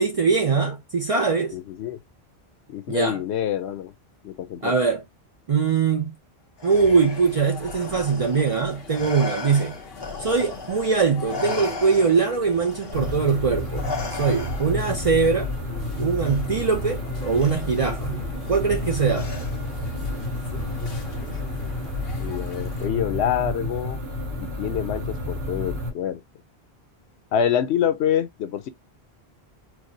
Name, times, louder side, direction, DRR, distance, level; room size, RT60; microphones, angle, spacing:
voice 1, 0.0-1.6 2.9-3.2 4.6-5.0 5.5-6.2 6.6-9.8 10.2-15.5 16.0-18.2 18.5-19.3, right 5 dB, 50° right, 0.4 m, -22 dB
voice 2, 1.5-2.0 2.7-3.9 4.2-4.7 22.2-24.0 24.4-26.2 27.3-28.7, left 9 dB, 90° left, 0.9 m, -26 dB
Respiratory sounds, 6.6-10.9 11.3-14.9 16.2-16.4 17.4-17.9 19.1-19.8, left 4 dB, 30° left, 0.6 m, -35 dB
sound 1, 7.1-22.9, left 5 dB, 65° left, 1.1 m, -43 dB
sound 2, 12.9-25.9, left 2 dB, 70° right, 1.1 m, -30 dB
4.6 x 2.1 x 2.6 m
omnidirectional pair, 1.1 m